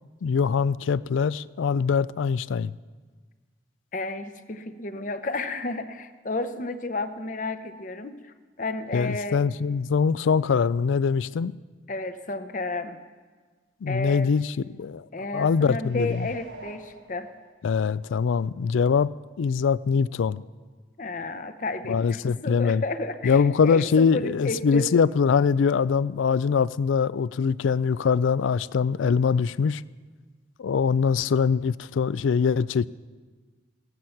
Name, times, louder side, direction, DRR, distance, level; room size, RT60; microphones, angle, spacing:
voice 1, 0.2-2.7 8.9-11.5 13.8-15.0 15.3-16.3 17.6-19.1 19.4-20.4 21.9-22.8 23.2-29.8 30.6-32.9, left 6 dB, 85° left, 0.4 m, -23 dB
voice 2, 3.9-9.4 11.9-13.0 13.9-14.3 15.1-17.3 21.0-24.9, left 2 dB, 40° left, 0.8 m, -32 dB
sound 1, 15.8-17.9 18.3-18.4, right 1 dB, 85° right, 3.6 m, -47 dB
15.5 x 14.0 x 5.8 m
head